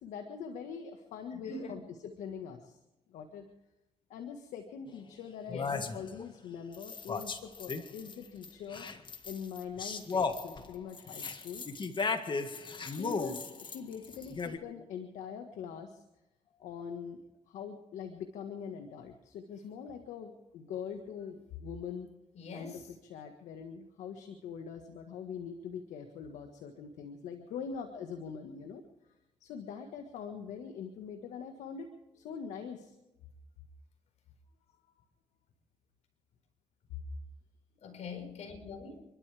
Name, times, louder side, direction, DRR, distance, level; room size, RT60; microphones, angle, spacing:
voice 1, 0.0-2.8 3.1-3.5 4.1-8.9 9.2-11.6 12.8-16.0 16.6-17.2 17.5-22.1 22.5-29.1 29.4-32.9, left 6 dB, 85° left, 1.6 m, -43 dB
voice 2, 1.3-1.8 5.5-5.8 22.3-22.8 37.8-39.1, left 3 dB, 70° left, 4.9 m, -43 dB
sound 1, 4.9-5.0 5.5-6.3 6.7-8.1 8.4-14.6, left 4 dB, 40° left, 1.8 m, -36 dB
28.5 x 12.5 x 3.5 m
cardioid pair, 70°, 12 cm